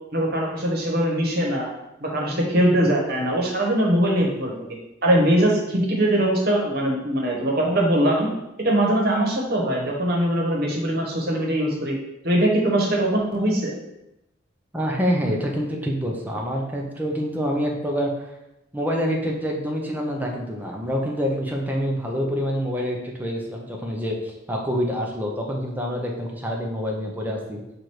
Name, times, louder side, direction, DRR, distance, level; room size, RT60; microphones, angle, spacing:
voice 1, 0.1-1.7 2.0-4.5 5.0-8.3 8.6-12.0 12.2-13.7, right 1 dB, 55° right, -1 dB, 1.1 m, -21 dB
voice 2, 14.7-18.3 18.7-27.6, equal, 10° right, 0 dB, 0.7 m, -26 dB
4.6 x 2.6 x 4.5 m, 0.88 s
head